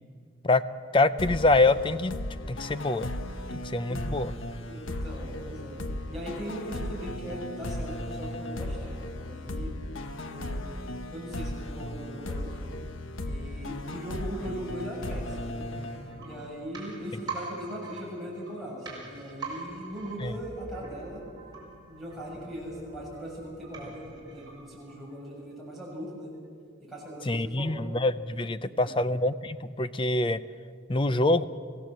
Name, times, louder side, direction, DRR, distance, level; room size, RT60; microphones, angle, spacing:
voice 1, 0.9-2.1 2.5-3.1 3.5-4.3 20.2-20.3 27.3-30.4 30.9-31.4, left 2 dB, 25° left, 14 dB, 0.5 m, -25 dB
sound 1, 1.2-16.6, left 1 dB, 75° left, 1.1 m, -36 dB
voice 2, 4.6-5.8 6.1-9.7 10.3-10.7 11.1-12.7 13.2-15.7 16.2-21.2 21.9-26.3 26.9-27.8 28.6-29.0, equal, ahead, -7 dB, 7.4 m, -40 dB
sound 2, 15.7-25.4 25.7-25.8, right 4 dB, 20° right, 5.2 m, -44 dB
25.0 x 16.0 x 7.7 m, 2.1 s
head